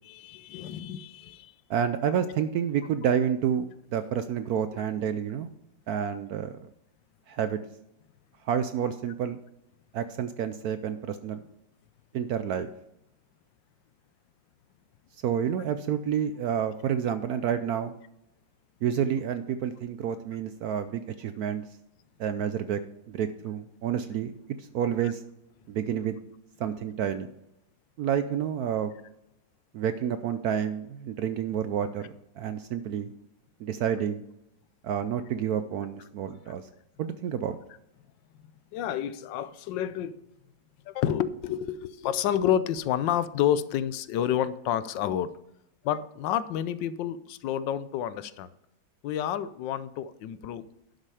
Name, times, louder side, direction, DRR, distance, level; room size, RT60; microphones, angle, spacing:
voice 1, 0.0-1.5 25.0-25.1 38.7-40.2 40.9-45.3 45.8-48.5 49.0-50.6, left 10 dB, 80° left, 15 dB, 1.3 m, -29 dB
voice 2, 1.7-3.6 3.9-5.5 5.9-6.5 7.3-7.6 8.4-9.4 9.9-11.4 12.1-12.7 15.2-17.9 18.8-21.6 22.2-22.8 23.1-24.3 24.6-25.2 25.7-26.2 26.6-27.3 28.0-28.9 29.7-33.1 33.6-34.2 34.8-36.6 37.0-37.6, right 8 dB, 70° right, 10 dB, 0.9 m, -29 dB
11.5 x 6.6 x 4.9 m, 0.83 s
omnidirectional pair, 2.0 m